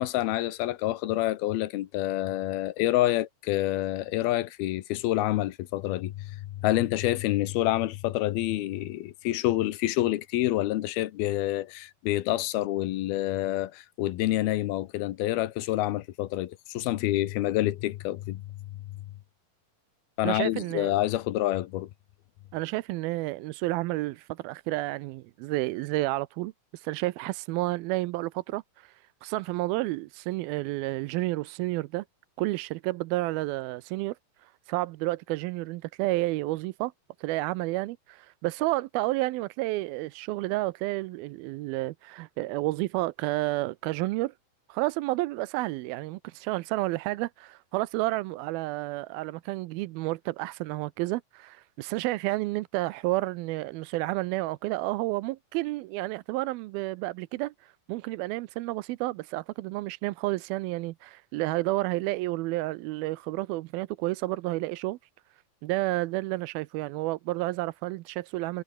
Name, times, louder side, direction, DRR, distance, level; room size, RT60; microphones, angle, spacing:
voice 1, 0.0-18.4 18.7-18.8 20.2-21.9, left 15 dB, 90° left, 3.0 m, -28 dB
voice 2, 20.2-21.0 22.5-32.0 32.4-36.9 37.2-44.3 44.7-65.0 65.6-68.6, right 19 dB, 85° right, 2.5 m, -31 dB
omnidirectional pair, 4.3 m